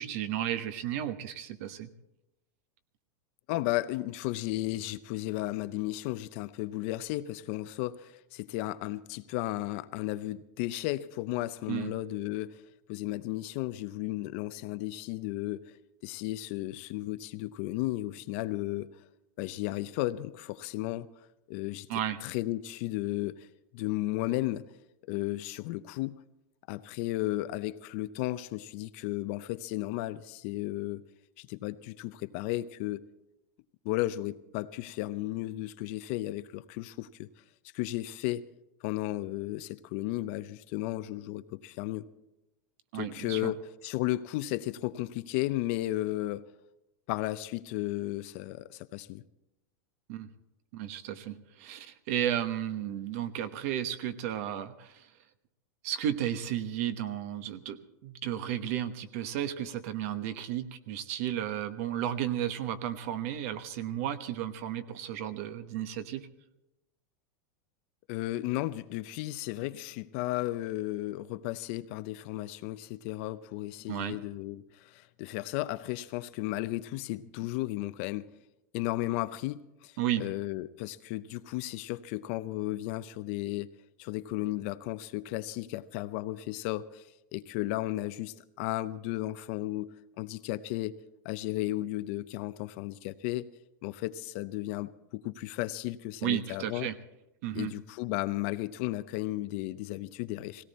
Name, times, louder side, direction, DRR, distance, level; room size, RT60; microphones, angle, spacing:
voice 1, 0.0-1.9 11.7-11.9 21.9-22.2 42.9-43.5 50.1-50.3 50.7-55.1 55.8-66.3 73.9-74.2 80.0-80.2 96.2-97.0 97.4-97.7, right 11 dB, 50° right, 11 dB, 1.1 m, -33 dB
voice 2, 3.5-12.6 12.9-15.7 16.0-18.9 19.4-21.1 21.5-21.9 22.2-23.5 23.7-24.7 25.1-26.2 26.7-31.0 31.4-33.0 33.8-37.3 37.7-38.4 38.8-42.1 42.9-46.5 47.1-49.2 68.1-78.3 78.7-83.7 84.0-87.0 87.3-91.0 91.2-93.5 93.8-96.9 97.5-100.6, left 17 dB, 45° left, 13 dB, 0.6 m, -34 dB
18.5 x 17.0 x 4.2 m, 0.90 s
supercardioid pair, 165°, 10 cm